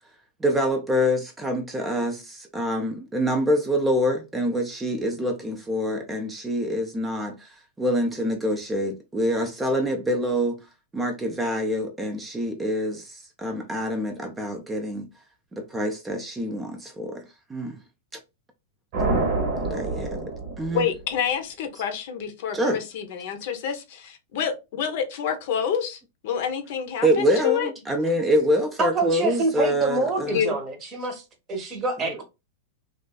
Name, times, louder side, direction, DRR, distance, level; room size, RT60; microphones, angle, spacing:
voice 1, 0.4-10.6 10.9-15.1 15.5-17.2 17.5-17.8 19.7-20.2 20.6-20.9 22.5-22.8 27.0-30.4 32.1-32.2, equal, 15° right, 0.4 m, -26 dB
sound 1, 18.9-21.2, right 3 dB, 55° right, 1.0 m, -27 dB
voice 2, 20.7-27.7 30.3-30.5, left 8 dB, 60° left, 0.6 m, -28 dB
voice 3, 28.8-31.2 31.5-32.2, right 3 dB, 30° right, 0.8 m, -26 dB
2.5 x 2.3 x 2.2 m
hypercardioid pair, 120°, 0 cm